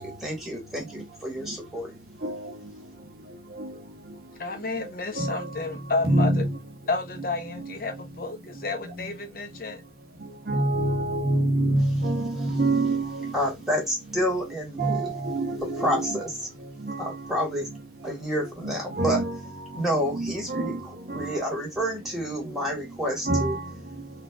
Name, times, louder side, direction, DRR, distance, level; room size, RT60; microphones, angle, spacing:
voice 1, 0.0-1.9 12.4-12.6 13.3-15.1 15.6-16.5 17.0-17.7 18.0-19.2 19.7-23.6, equal, ahead, 1.6 m, -29 dB
voice 2, 4.4-6.4 6.9-9.8, left 3 dB, 55° left, 0.7 m, -31 dB
voice 3, 6.1-6.4 10.5-13.1 14.8-16.1 19.0-19.3 20.2-20.6 23.3-23.5, right 2 dB, 55° right, 0.8 m, -24 dB
4.1 x 2.4 x 2.3 m
head